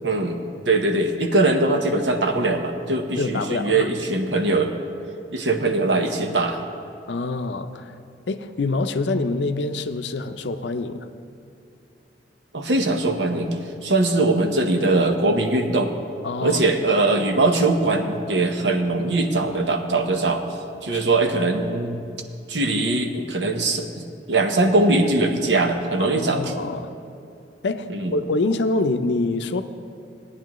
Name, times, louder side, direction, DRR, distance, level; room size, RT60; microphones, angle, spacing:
voice 1, 0.0-0.4 0.7-4.7 5.3-6.6 12.5-13.5 13.8-15.9 16.4-20.4 20.8-22.0 22.5-23.9 24.3-26.4 27.9-28.1, right 2 dB, 80° right, 5 dB, 0.9 m, -21 dB
voice 2, 3.2-3.9 7.1-7.9 8.3-11.1 16.2-16.6 20.9-21.0 26.0-26.9 27.6-29.6, left 3 dB, 75° left, 10 dB, 0.5 m, -25 dB
17.5 x 9.9 x 3.1 m, 2.6 s
head